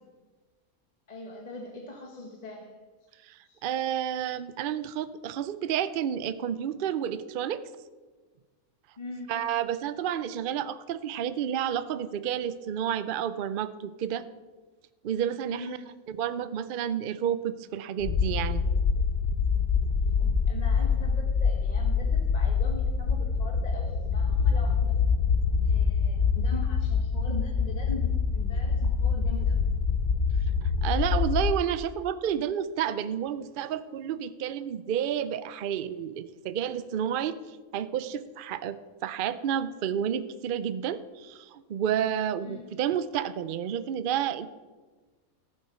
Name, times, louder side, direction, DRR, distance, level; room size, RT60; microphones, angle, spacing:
voice 1, 1.1-2.8 3.4-3.6 9.0-9.5 15.5-15.9 20.2-25.0 25.7-29.7 42.4-42.7, left 2 dB, 30° left, 1 dB, 1.0 m, -42 dB
voice 2, 3.3-7.6 9.3-14.3 15.0-15.8 16.1-18.6 30.6-44.5, right 9 dB, 70° right, 13 dB, 0.5 m, -30 dB
sound 1, 18.0-31.5, left 5 dB, 65° left, 0.5 m, -25 dB
14.0 x 7.7 x 4.4 m, 1.3 s
omnidirectional pair, 1.5 m